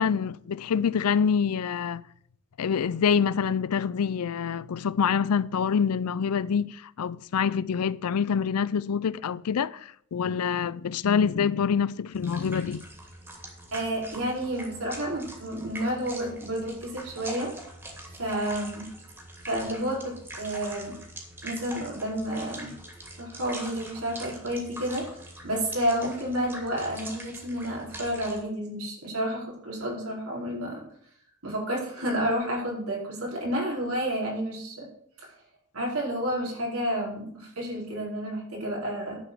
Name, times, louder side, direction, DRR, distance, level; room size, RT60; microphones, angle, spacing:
voice 1, 0.0-2.0 2.6-12.8, left 6 dB, 85° left, 0.4 m, -26 dB
sound 1, 12.1-28.4, right 1 dB, 10° right, 2.7 m, -43 dB
voice 2, 13.7-17.5 18.2-18.9 19.5-20.9 21.4-22.7 23.2-25.0 25.4-30.8 31.4-34.9 35.7-39.2, equal, 75° right, 4.6 m, -30 dB
11.0 x 4.9 x 8.0 m
head